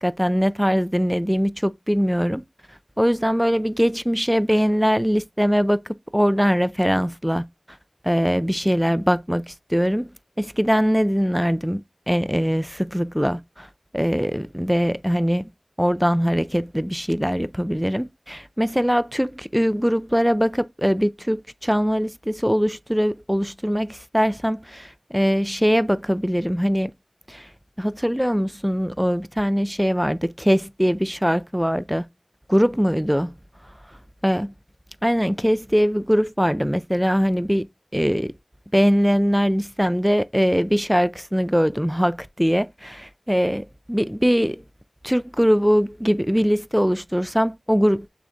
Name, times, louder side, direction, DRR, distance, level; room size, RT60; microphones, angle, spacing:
voice 1, 0.0-2.4 3.0-7.5 8.0-10.1 10.4-13.7 13.9-15.5 15.8-26.9 27.3-27.5 27.8-32.0 32.5-33.4 34.2-34.5 35.0-37.7 37.9-38.3 38.7-44.6 45.0-48.1, equal, 5° right, 0.3 m, -22 dB
6.3 x 3.4 x 2.4 m
wide cardioid pair, 50°, 0 cm